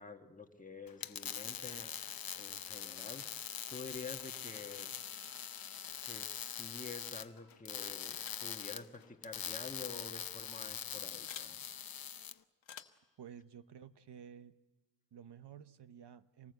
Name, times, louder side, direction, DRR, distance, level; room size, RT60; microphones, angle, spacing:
voice 1, 0.0-1.9 2.3-3.4 3.7-5.0 6.0-11.6, left 4 dB, 20° left, 5 dB, 1.5 m, -49 dB
sound 1, 0.9-12.3, left 8 dB, 50° left, 0.8 m, -43 dB
Bowed string instrument, 2.7-7.6, right 2 dB, 35° right, 5.6 m, -67 dB
sound 2, 8.1-8.5 9.8-10.0 11.3-11.5 12.6-13.1, left 9 dB, 90° left, 1.2 m, -51 dB
voice 2, 13.2-14.5 15.1-16.5, right 8 dB, 65° right, 12 dB, 1.0 m, -52 dB
26.0 x 19.5 x 8.1 m, 1.2 s
wide cardioid pair, 115°, 44 cm